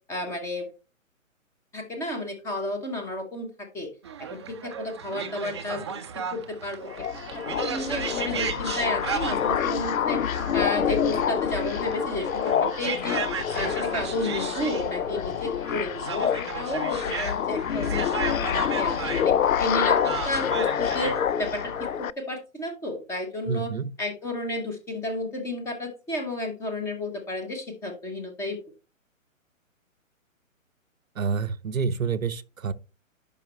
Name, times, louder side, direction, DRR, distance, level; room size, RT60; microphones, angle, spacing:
voice 1, 0.1-0.7 1.7-3.9 4.3-6.0 6.3-7.1 7.6-10.2 10.5-13.2 13.5-23.7 24.0-28.6, left 1 dB, 5° left, 0.8 m, -32 dB
sound 1, 4.0-22.0, right 7 dB, 20° right, 0.5 m, -36 dB
sound 2, 6.8-22.1, left 8 dB, 85° left, 0.5 m, -27 dB
voice 2, 23.5-23.9 31.2-32.7, right 5 dB, 75° right, 0.8 m, -28 dB
10.5 x 5.2 x 3.2 m
figure-of-eight pair, 135°, 41 cm